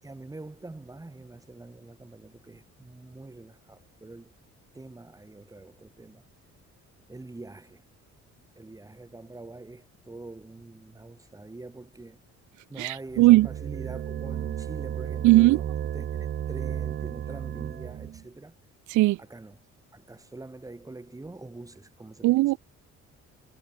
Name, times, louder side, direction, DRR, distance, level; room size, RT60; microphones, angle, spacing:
voice 1, 0.0-4.3 4.7-6.2 7.1-7.8 8.6-12.2 12.7-15.7 15.9-18.5 19.2-19.6 19.9-22.4, right 2 dB, 10° right, 7.3 m, -44 dB
voice 2, 12.8-13.5 15.2-15.6 18.9-19.2 22.2-22.6, right 19 dB, 90° right, 0.4 m, -18 dB
sound 1, 13.1-18.2, right 10 dB, 40° right, 0.6 m, -33 dB
cardioid pair, 170°, 29 cm